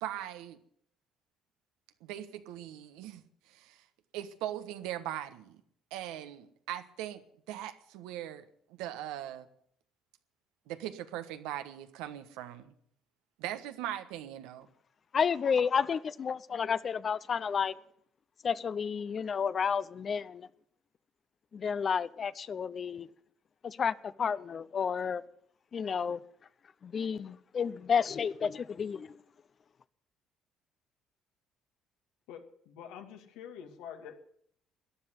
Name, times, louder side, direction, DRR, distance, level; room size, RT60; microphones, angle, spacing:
voice 1, 0.0-0.6 2.0-3.8 4.1-5.6 5.9-7.2 7.5-8.4 8.8-9.5 10.7-12.7 13.4-14.7, right 12 dB, 90° right, 1.3 m, -40 dB
voice 2, 15.1-17.8 18.4-20.5 21.5-23.1 23.6-25.2 25.7-26.2 26.8-29.2, left 6 dB, 45° left, 0.7 m, -31 dB
voice 3, 32.3-34.2, left 8 dB, 85° left, 2.3 m, -46 dB
14.0 x 10.5 x 9.7 m
supercardioid pair, 85°, 0 cm